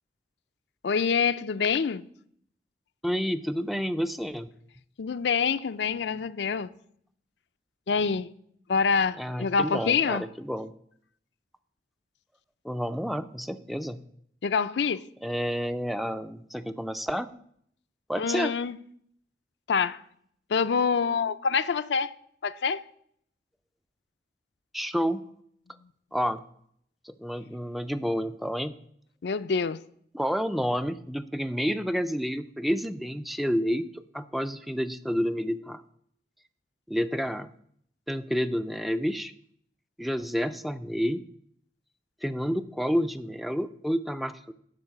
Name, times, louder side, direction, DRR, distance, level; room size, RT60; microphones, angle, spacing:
voice 1, 0.8-2.0 5.0-6.7 7.9-8.3 8.7-10.2 14.4-15.0 18.2-18.8 19.7-20.0 20.5-22.1 22.4-22.8 29.2-29.8, left 5 dB, 75° left, 0.4 m, -26 dB
voice 2, 3.0-4.5 9.2-10.7 12.6-14.0 15.2-17.3 18.1-18.5 24.7-25.2 26.1-26.4 27.0-28.7 30.1-35.8 36.9-37.5 38.1-39.3 40.0-41.2 42.2-44.5, equal, ahead, 0.4 m, -29 dB
12.0 x 4.6 x 8.0 m
head